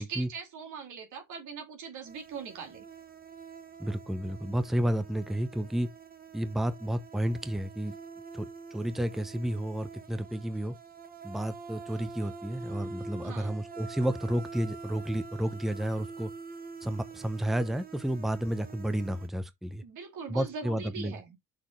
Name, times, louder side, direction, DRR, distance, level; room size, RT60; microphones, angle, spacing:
voice 1, 0.0-2.8 13.2-13.6 19.8-21.4, right 5 dB, 80° right, 2.5 m, -41 dB
sound 1, 2.0-19.3, right 4 dB, 30° right, 1.1 m, -46 dB
voice 2, 3.8-5.9 6.3-8.0 8.3-10.8 11.2-16.3 16.8-19.8 20.3-21.1, right 1 dB, ahead, 0.8 m, -31 dB
6.5 x 3.6 x 4.6 m
cardioid pair, 90°, 30 cm